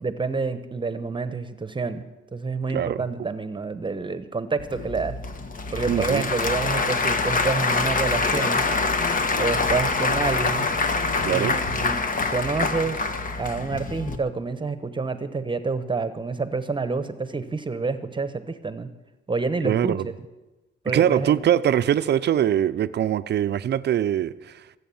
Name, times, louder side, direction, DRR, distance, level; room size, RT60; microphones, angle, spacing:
voice 1, 0.0-2.0 2.3-5.2 5.7-8.7 9.4-10.7 11.3-12.0 12.3-13.1 13.4-18.9 19.3-20.1 20.8-21.4, right 4 dB, 25° right, 1.0 m, -28 dB
Applause / Crowd, 4.6-14.2, left 3 dB, 45° left, 1.5 m, -25 dB
voice 2, 5.9-6.3 11.2-11.6 19.6-20.0 20.9-24.5, right 10 dB, 60° right, 0.6 m, -22 dB
24.0 x 8.3 x 7.1 m
cardioid pair, 90°, 20 cm